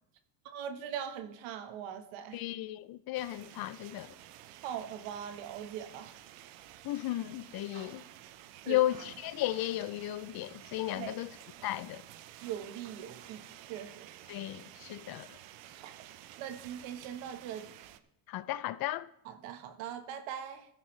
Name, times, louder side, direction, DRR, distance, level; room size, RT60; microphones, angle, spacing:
voice 1, 0.4-2.4 4.6-6.1 8.5-8.8 10.9-11.2 11.6-11.7 12.4-14.2 15.7-15.9 16.4-17.7 19.2-20.7, right 9 dB, 85° right, 1.4 m, -41 dB
voice 2, 2.3-4.1 6.8-8.0 8.7-11.4 11.6-12.0 14.3-15.4 18.3-19.1, left 15 dB, 50° left, 0.5 m, -34 dB
sound 1, 3.1-18.0, right 13 dB, 70° right, 0.8 m, -52 dB
15.0 x 10.0 x 3.2 m
cardioid pair, 115°, 46 cm